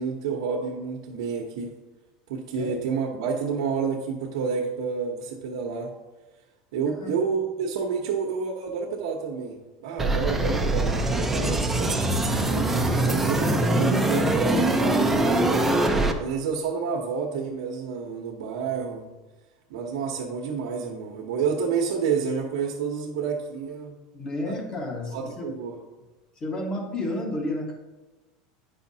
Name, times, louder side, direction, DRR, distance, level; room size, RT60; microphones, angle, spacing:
voice 1, 0.0-1.7 2.3-5.9 6.7-9.6 9.8-12.7 13.0-15.6 16.2-19.1 19.7-24.0 24.4-24.6 25.1-25.8, right 6 dB, 85° right, -1 dB, 1.0 m, -29 dB
voice 2, 6.9-7.2 24.1-25.5 26.4-27.7, left 1 dB, 25° left, 2 dB, 1.4 m, -31 dB
sound 1, 10.0-16.1, right 1 dB, 10° right, 0.6 m, -23 dB
9.3 x 5.7 x 2.8 m, 1.2 s
supercardioid pair, 140°, 3 cm